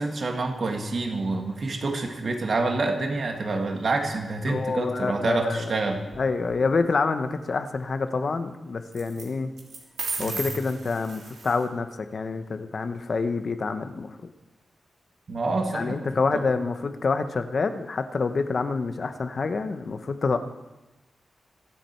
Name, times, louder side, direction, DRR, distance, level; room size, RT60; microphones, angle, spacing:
voice 1, 0.0-6.1 10.2-10.4 15.3-16.1 16.3-16.5, right 3 dB, 50° right, 3 dB, 1.8 m, -27 dB
voice 2, 4.5-5.6 6.2-9.5 10.2-14.2 15.7-20.4, left 4 dB, 45° left, 9 dB, 0.9 m, -27 dB
sound 1, 6.1-6.6 8.9-9.3 9.6-11.6, right 4 dB, 80° right, 3.2 m, -35 dB
25.0 x 8.5 x 4.5 m, 1.0 s
wide cardioid pair, 140°, 0 cm